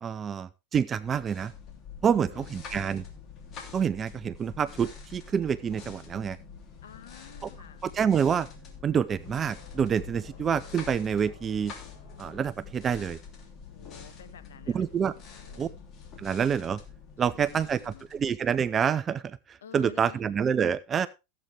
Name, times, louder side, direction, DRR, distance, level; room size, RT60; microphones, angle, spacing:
voice 1, 0.0-1.5 2.0-3.0 3.7-6.4 7.4-7.5 7.8-8.5 8.8-11.7 12.2-13.2 14.7-15.1 15.6-15.7 16.2-16.8 17.2-21.1, right 7 dB, 25° right, 15 dB, 0.5 m, -27 dB
sound 1, 1.0-18.8, left 6 dB, 40° left, 2.9 m, -46 dB
voice 2, 2.1-2.5 6.8-7.9 13.7-15.7 17.2-18.1 19.6-20.2, left 8 dB, 85° left, 12 dB, 1.4 m, -50 dB
sound 2, 5.2-13.3, left 5 dB, 55° left, 4.6 m, -59 dB
15.5 x 8.1 x 3.4 m, 0.27 s
hypercardioid pair, 110°, 0 cm